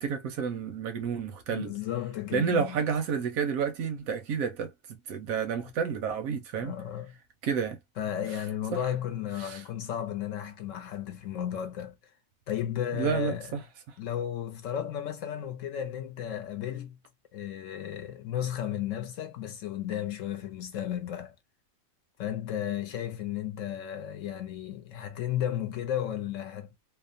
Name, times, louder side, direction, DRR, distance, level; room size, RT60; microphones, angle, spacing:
voice 1, 0.0-1.7 2.3-4.7 5.1-6.7 7.4-7.8 8.7-8.8 9.4-9.6 12.9-13.6, right 6 dB, 85° right, 1.1 m, -30 dB
voice 2, 1.5-2.8 6.6-7.2 8.0-12.1 12.5-13.6 14.0-17.0 17.3-21.3 22.2-26.8, left 10 dB, 70° left, 0.9 m, -34 dB
2.8 x 2.0 x 2.5 m
omnidirectional pair, 1.4 m